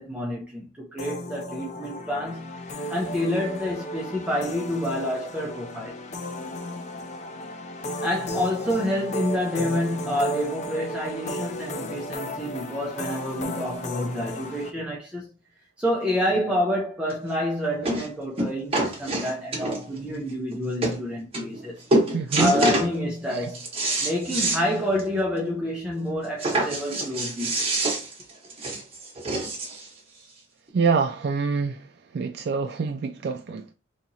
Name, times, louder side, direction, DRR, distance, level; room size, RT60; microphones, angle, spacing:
voice 1, 0.0-6.0 8.0-15.3 15.8-21.8 22.4-23.6 24.0-27.7, left 1 dB, 5° right, 0.6 m, -28 dB
sound 1, 1.0-14.7, equal, 35° left, 0.4 m, -34 dB
sound 2, 17.1-17.2 17.8-18.1 18.4-20.0 20.5-20.6 20.8-21.0 21.3-21.6 21.9-22.9 23.3-24.6 25.0-25.1 25.4-25.5 26.4-29.9 30.7-30.8, right 2 dB, 30° right, 1.1 m, -26 dB
voice 2, 22.1-22.5 23.3-23.5 30.7-31.9 32.1-33.7, right 5 dB, 55° right, 0.3 m, -26 dB
4.0 x 2.8 x 2.7 m
head